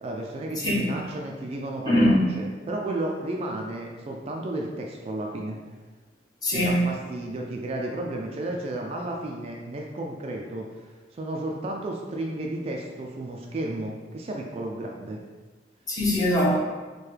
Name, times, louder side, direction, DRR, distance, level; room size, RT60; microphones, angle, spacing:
voice 1, 0.0-5.6 6.5-15.2, right 1 dB, 35° right, 0 dB, 0.3 m, -33 dB
voice 2, 0.6-0.9 1.9-2.2 6.4-6.8 15.9-16.6, left 1 dB, 20° left, -4 dB, 0.8 m, -22 dB
4.6 x 2.2 x 3.2 m, 1.4 s
head